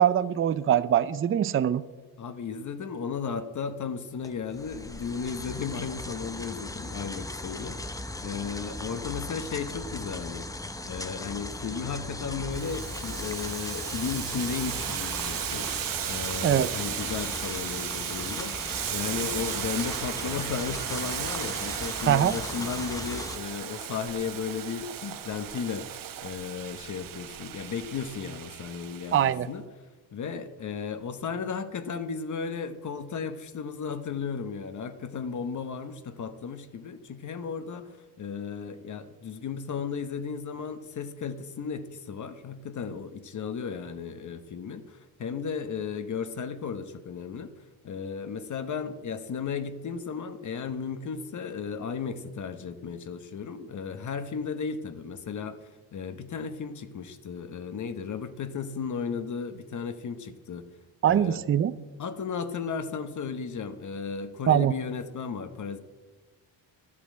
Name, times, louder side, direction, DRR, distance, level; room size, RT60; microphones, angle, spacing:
voice 1, 0.0-1.8 16.4-16.7 22.1-22.4 29.1-29.5 61.0-61.7 64.5-64.7, right 10 dB, 35° right, 15 dB, 0.5 m, -22 dB
voice 2, 2.2-10.5 10.8-29.7 30.1-47.5 47.8-60.6 61.1-61.4 62.0-65.8, left 6 dB, 45° left, 10 dB, 1.1 m, -35 dB
sound 1, 4.2-23.4, left 2 dB, 10° left, 0.7 m, -38 dB
Boiling, 12.5-29.3, right 10 dB, 55° right, 1.0 m, -35 dB
12.0 x 8.5 x 7.6 m, 1.2 s
cardioid pair, 110°, 40 cm